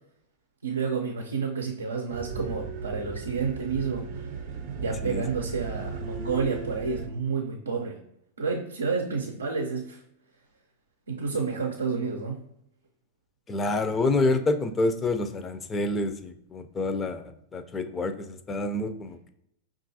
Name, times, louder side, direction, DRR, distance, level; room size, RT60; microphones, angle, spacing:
voice 1, 0.6-4.1 4.8-8.0 8.4-10.0 11.1-12.4, right 5 dB, 90° right, 2 dB, 0.5 m, -30 dB
sound 1, 2.1-7.1, right 5 dB, 55° right, 0.6 m, -36 dB
voice 2, 13.5-19.2, left 2 dB, 20° left, 9 dB, 0.4 m, -28 dB
5.5 x 2.5 x 2.7 m, 0.78 s
hypercardioid pair, 105°, 0 cm